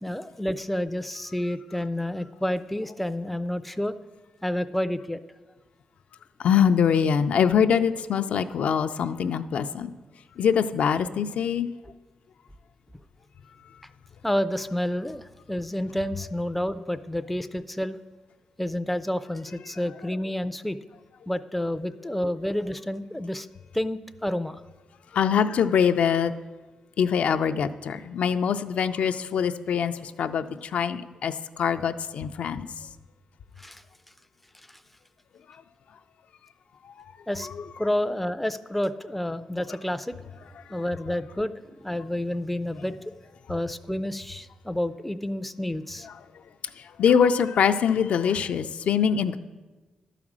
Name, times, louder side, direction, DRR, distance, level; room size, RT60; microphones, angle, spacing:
voice 1, 0.0-4.0 4.4-5.2 14.2-18.0 18.6-20.8 21.3-23.5 23.7-24.6 33.6-33.8 37.3-37.5 37.8-40.2 40.7-41.5 41.8-43.0 43.5-46.1, left 1 dB, 5° left, 11 dB, 0.4 m, -29 dB
voice 2, 6.4-9.9 10.4-11.7 22.1-22.2 25.1-26.3 27.0-32.7 36.8-36.9 37.5-37.6 40.6-40.7 46.0-46.1 46.8-49.4, left 7 dB, 75° left, 8 dB, 0.4 m, -24 dB
11.5 x 5.0 x 7.3 m, 1.2 s
cardioid pair, 95°, 2 cm